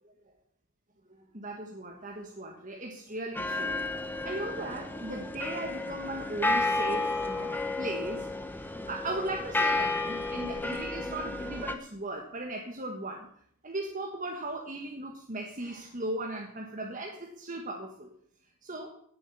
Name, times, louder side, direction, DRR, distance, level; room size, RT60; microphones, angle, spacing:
voice 1, 1.1-3.7 4.2-13.3 13.6-18.1 18.6-18.9, right 2 dB, 35° right, 1 dB, 1.6 m, -37 dB
sound 1, 3.4-11.7, left 2 dB, 10° left, 1.0 m, -32 dB
17.0 x 7.7 x 7.1 m, 0.65 s
head